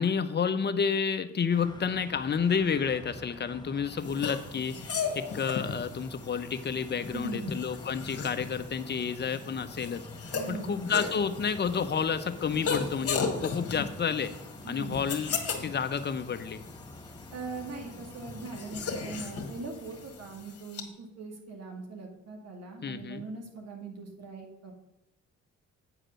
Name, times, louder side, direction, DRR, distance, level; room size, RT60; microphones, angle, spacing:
voice 1, 0.0-4.8 5.1-10.1 10.5-14.3 14.7-15.3 15.6-16.6 22.8-23.2, left 6 dB, 35° left, 10 dB, 0.8 m, -30 dB
sound 1, 1.5-20.6, left 2 dB, 15° left, 1.1 m, -47 dB
sound 2, 4.0-20.8, left 5 dB, 50° left, 1.7 m, -37 dB
voice 2, 7.1-7.6 10.3-10.8 14.6-15.0 17.3-24.7, right 3 dB, 55° right, 1 dB, 2.0 m, -41 dB
8.9 x 4.9 x 6.3 m, 0.94 s
cardioid pair, 90°, 30 cm